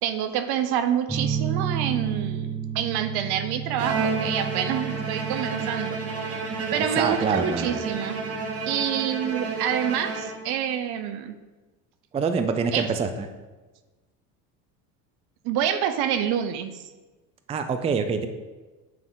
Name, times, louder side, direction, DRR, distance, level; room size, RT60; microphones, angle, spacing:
voice 1, 0.0-6.0 6.7-8.2 8.7-11.4 12.7-12.9 15.4-16.8, right 9 dB, 60° right, 10 dB, 0.7 m, -27 dB
sound 1, 1.1-8.7, right 8 dB, 5° left, 0.9 m, -33 dB
Bowed string instrument, 3.8-10.7, right 4 dB, 35° right, 1.1 m, -31 dB
voice 2, 6.7-7.7 12.1-13.3 17.5-18.3, right 5 dB, 15° right, 8 dB, 0.4 m, -26 dB
8.7 x 3.4 x 3.7 m, 1.2 s
hypercardioid pair, 80°, 43 cm